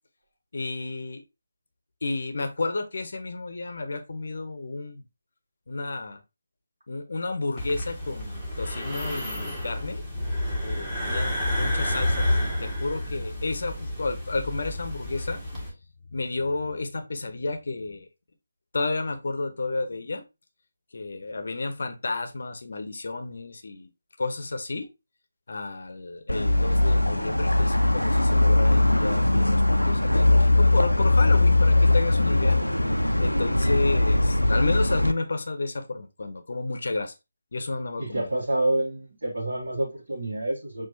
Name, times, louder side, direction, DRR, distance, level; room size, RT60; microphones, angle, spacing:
voice 1, 0.5-1.2 2.0-5.0 5.7-6.2 6.9-10.0 10.6-15.4 16.1-18.1 18.7-20.2 20.9-23.9 24.2-24.9 25.5-32.6 33.2-37.1 37.5-38.3, left 3 dB, 50° left, 0.7 m, -31 dB
sound 1, 7.6-15.7, left 1 dB, 10° right, 1.2 m, -29 dB
sound 2, 26.3-35.1, left 2 dB, 85° left, 0.4 m, -20 dB
voice 2, 38.0-40.9, right 1 dB, 60° right, 1.3 m, -28 dB
5.9 x 2.5 x 2.7 m
figure-of-eight pair, 155°, 0 cm